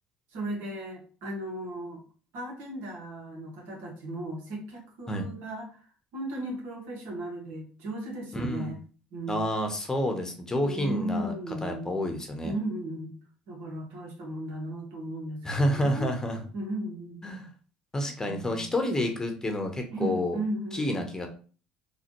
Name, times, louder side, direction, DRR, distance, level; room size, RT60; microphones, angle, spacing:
voice 1, 0.3-2.0 2.3-5.7 6.1-8.8 9.1-9.4 10.6-12.0 12.4-13.2 13.5-16.1 16.5-17.3 18.2-18.7 19.9-21.0, right 1 dB, 70° right, 0 dB, 1.3 m, -36 dB
voice 2, 8.3-8.7 9.3-11.3 11.6-12.5 15.4-16.4 17.2-17.5 17.9-20.4 20.7-21.3, left 1 dB, 15° left, 4 dB, 0.9 m, -29 dB
4.0 x 2.5 x 3.0 m, 0.39 s
hypercardioid pair, 65°, 3 cm